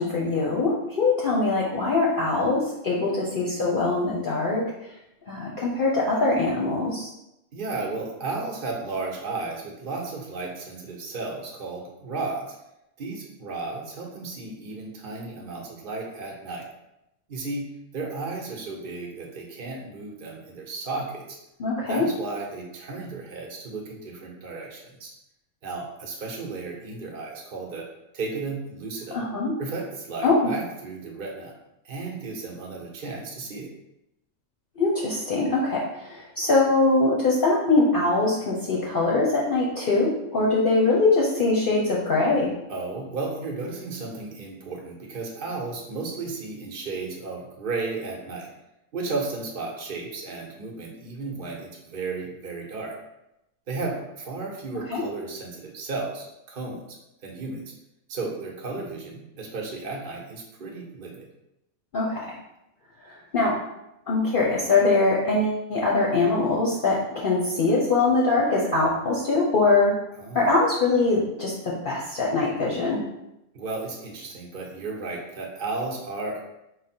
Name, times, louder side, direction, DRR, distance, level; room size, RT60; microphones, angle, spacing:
voice 1, 0.0-4.6 5.3-7.1 21.6-22.0 29.1-29.5 30.2-30.5 34.8-42.5 54.9-55.0 61.9-62.3 63.1-63.6 64.1-69.9 70.3-73.0, left 3 dB, 50° left, -4 dB, 0.8 m, -22 dB
voice 2, 7.5-12.6 13.0-16.7 17.3-17.7 17.9-21.4 21.8-25.1 25.6-27.9 28.1-29.2 29.6-31.5 31.8-33.7 42.7-48.5 48.9-53.0 53.7-57.0 57.2-57.7 58.1-61.3 70.2-70.5 73.5-76.4, right 3 dB, 50° right, -1 dB, 1.0 m, -34 dB
4.8 x 2.1 x 4.2 m, 0.86 s
omnidirectional pair, 1.3 m